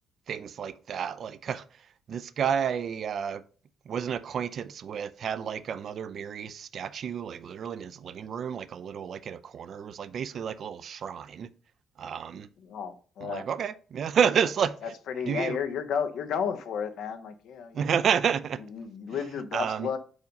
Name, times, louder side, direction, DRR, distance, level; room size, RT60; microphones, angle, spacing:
voice 1, 0.3-1.6 2.1-3.4 3.9-11.5 12.0-12.5 13.2-14.8 15.2-15.6 17.7-18.6 19.5-19.9, right 7 dB, 60° right, 0.5 m, -30 dB
voice 2, 12.6-13.4 14.8-17.9 18.7-20.0, left 7 dB, 80° left, 0.8 m, -32 dB
5.3 x 4.9 x 5.2 m
cardioid pair, 115°, 0 cm